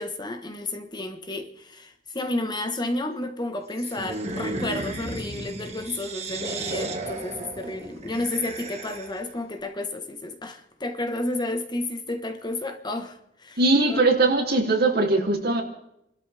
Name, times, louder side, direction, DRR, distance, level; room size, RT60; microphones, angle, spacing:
voice 1, 0.0-13.6 13.9-14.0, left 2 dB, 25° left, 1.4 m, -31 dB
sound 1, 3.8-9.3, right 2 dB, 35° right, 1.8 m, -34 dB
voice 2, 13.6-15.6, right 2 dB, 55° right, 3.2 m, -20 dB
29.0 x 13.0 x 3.5 m
head